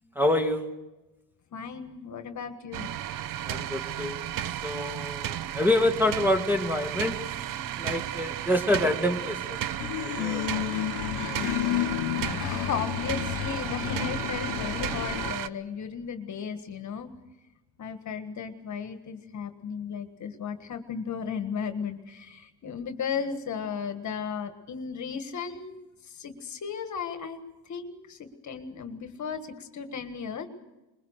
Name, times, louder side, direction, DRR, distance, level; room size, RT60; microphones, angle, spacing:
voice 1, 0.2-0.7 3.4-7.2 7.8-9.6 10.0-10.6, left 1 dB, 5° right, 6 dB, 1.9 m, -27 dB
voice 2, 1.5-2.9 12.4-17.1 17.8-25.8 26.1-27.4 27.7-30.5, left 6 dB, 45° left, 8 dB, 1.6 m, -35 dB
sound 1, 2.7-15.5, right 11 dB, 55° right, 0.7 m, -34 dB
sound 2, 9.8-15.3, left 16 dB, 75° left, 0.8 m, -31 dB
22.0 x 21.5 x 6.6 m, 1.0 s
cardioid pair, 130°, 39 cm